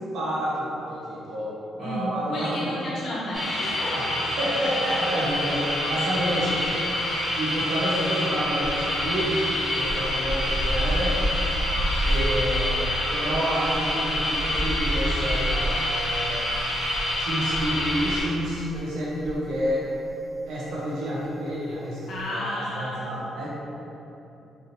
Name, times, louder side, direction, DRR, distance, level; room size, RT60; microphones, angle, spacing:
voice 1, 0.1-2.7 3.9-4.0 4.4-6.7 7.3-11.2 12.0-16.4 17.2-19.9 20.5-23.5, equal, 80° right, -6 dB, 0.9 m, -29 dB
voice 2, 1.8-4.0 22.1-23.0, left 1 dB, 65° left, -7 dB, 0.9 m, -32 dB
sound 1, 3.3-18.2, left 1 dB, 45° left, 1.4 m, -27 dB
sound 2, 5.2-6.0 6.3-19.8 20.1-20.3, equal, 40° right, 1.4 m, -31 dB
3.5 x 2.6 x 2.8 m, 2.9 s
cardioid pair, 90°, 0 cm